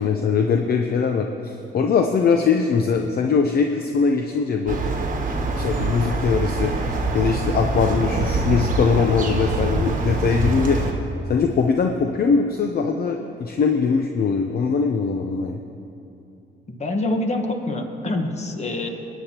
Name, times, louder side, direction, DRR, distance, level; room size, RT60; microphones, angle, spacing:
voice 1, 0.0-4.8 5.5-10.8 11.3-15.6, left 5 dB, 50° left, 4 dB, 0.6 m, -21 dB
sound 1, 4.7-10.9, right 2 dB, 40° right, 1.3 m, -24 dB
voice 2, 16.7-18.9, left 2 dB, 35° left, 4 dB, 1.3 m, -25 dB
19.5 x 9.2 x 2.9 m, 2.7 s
cardioid pair, 90°, 20 cm